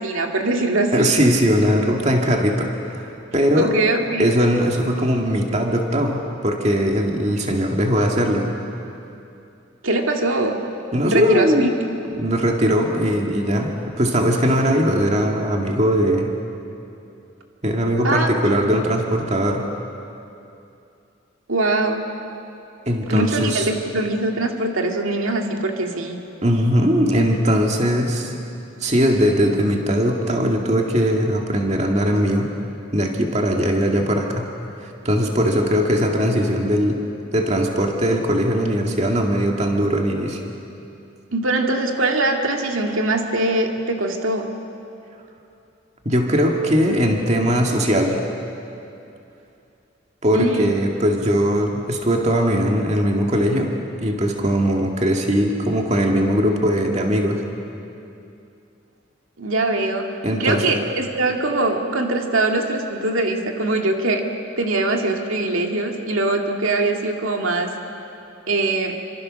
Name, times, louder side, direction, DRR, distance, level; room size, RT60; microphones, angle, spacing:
voice 1, 0.0-1.1 3.5-4.3 9.8-10.6 11.0-11.7 18.0-18.3 18.7-18.9 21.5-22.0 23.1-26.2 41.3-44.5 50.3-50.7 59.4-64.3 64.6-67.7 68.5-69.0, right 2 dB, 85° right, 2 dB, 2.2 m, -22 dB
voice 2, 0.9-3.7 4.2-8.5 10.9-11.7 12.2-16.3 17.6-19.7 22.9-23.7 26.4-28.4 28.8-32.5 32.9-34.5 34.8-37.0 37.3-40.4 46.1-48.2 50.2-53.7 54.0-57.4 60.2-60.7, equal, 35° right, 1 dB, 2.2 m, -20 dB
28.0 x 25.5 x 6.5 m, 2.7 s
head